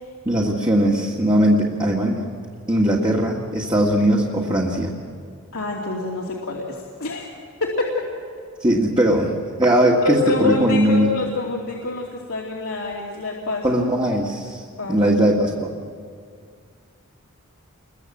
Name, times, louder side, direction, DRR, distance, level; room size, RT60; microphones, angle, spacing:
voice 1, 0.3-2.3 2.7-4.9 8.6-9.3 9.6-11.1 13.6-14.6 14.9-15.8, right 1 dB, 20° right, -2 dB, 1.8 m, -19 dB
voice 2, 5.5-7.3 7.6-7.8 10.0-13.7 14.8-15.1, left 3 dB, 85° left, -2 dB, 2.6 m, -26 dB
28.0 x 22.0 x 7.8 m, 2.1 s
head